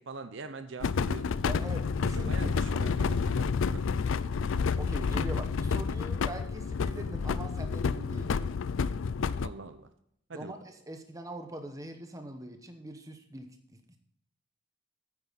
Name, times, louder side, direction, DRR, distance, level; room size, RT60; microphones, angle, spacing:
voice 1, 0.0-1.4 2.0-3.9 9.4-9.9 10.3-10.6, right 4 dB, 60° right, 9 dB, 0.7 m, -43 dB
sound 1, 0.8-9.5, left 5 dB, 70° left, 0.4 m, -29 dB
voice 2, 1.4-2.8 4.8-8.4 10.3-14.0, right 1 dB, 15° right, 6 dB, 1.0 m, -42 dB
9.7 x 8.9 x 4.0 m, 0.72 s
head